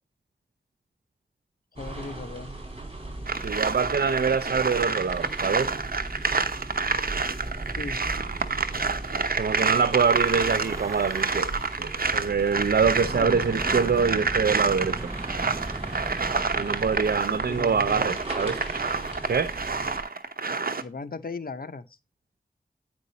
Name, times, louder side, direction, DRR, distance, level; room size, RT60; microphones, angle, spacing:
voice 1, 1.7-2.6 7.8-8.0 13.1-13.4 17.5-18.2 20.8-21.9, left 3 dB, 70° left, 1.0 m, -37 dB
sound 1, 1.8-20.0, right 2 dB, 35° right, 4.1 m, -38 dB
sound 2, 3.3-20.8, right 4 dB, 65° right, 1.1 m, -29 dB
voice 2, 3.4-5.7 9.4-11.5 11.8-15.1 16.5-18.6 19.3-19.5, right 5 dB, 80° right, 0.5 m, -25 dB
Breathing / Wind, 9.8-11.8 12.6-18.0, right 1 dB, 20° right, 0.8 m, -38 dB
9.4 x 5.2 x 4.1 m
wide cardioid pair, 60°, 16 cm